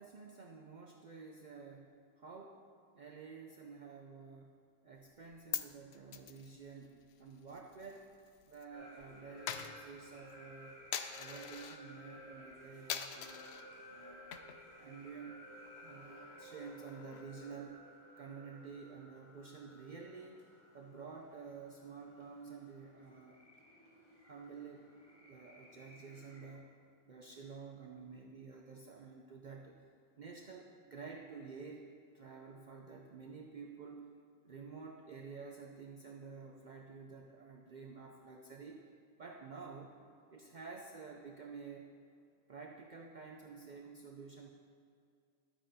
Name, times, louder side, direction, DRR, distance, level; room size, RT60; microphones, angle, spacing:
voice 1, 0.0-2.6 2.9-8.1 8.5-10.9 11.1-13.5 13.9-14.4 14.8-15.5 15.8-17.8 18.2-20.4 20.7-23.4 24.2-24.9 25.2-29.8 30.2-34.1 34.4-38.8 39.2-40.0 40.3-41.9 42.5-44.5, right 5 dB, 50° right, 1 dB, 0.7 m, -51 dB
Coin (dropping), 5.1-8.7 8.9-11.8 12.2-12.5 12.9-13.7 14.1-14.8 15.1-15.2 15.5-17.4, left 9 dB, 75° left, 0.9 m, -45 dB
sound 1, 8.7-26.6, left 1 dB, 30° left, 2.2 m, -56 dB
12.0 x 8.9 x 4.2 m, 2.3 s
omnidirectional pair, 1.1 m